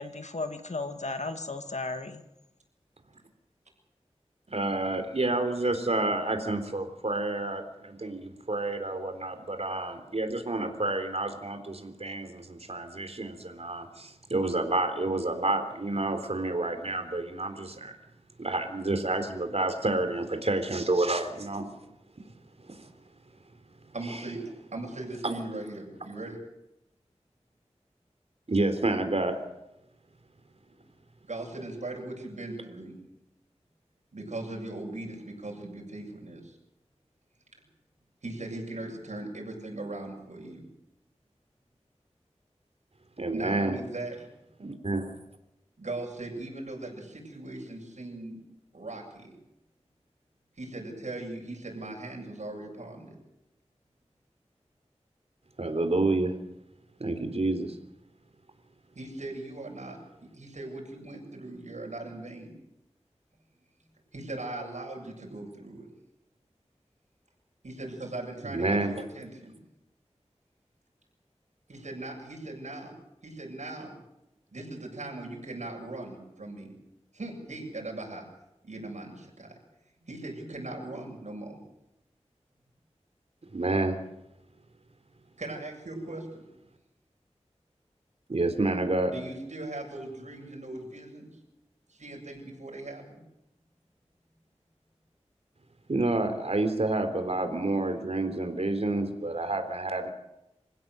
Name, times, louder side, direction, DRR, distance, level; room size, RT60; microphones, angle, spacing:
voice 1, 0.0-2.2, left 3 dB, 75° left, 7 dB, 2.1 m, -35 dB
voice 2, 4.5-17.9 18.4-21.9 22.6-22.9 24.1-24.2 25.2-25.4 28.5-29.4 43.2-43.7 44.6-45.1 55.6-56.3 57.0-57.8 68.5-68.9 83.5-84.0 88.3-89.1 95.9-100.1, right 2 dB, 60° right, 7 dB, 3.6 m, -29 dB
voice 3, 23.9-24.4 24.7-26.4 30.7-30.8 31.2-33.0 34.1-36.6 38.2-40.6 43.3-44.3 45.8-48.4 48.7-49.3 50.5-53.2 58.9-62.6 64.1-65.9 67.6-69.6 71.7-72.9 73.2-74.0 74.5-76.7 77.1-78.3 78.6-79.6 80.0-81.6 85.4-86.5 89.1-91.4 91.9-93.2, right 2 dB, 90° right, 0 dB, 7.7 m, -39 dB
26.5 x 16.5 x 7.9 m, 0.88 s
wide cardioid pair, 60°, 12 cm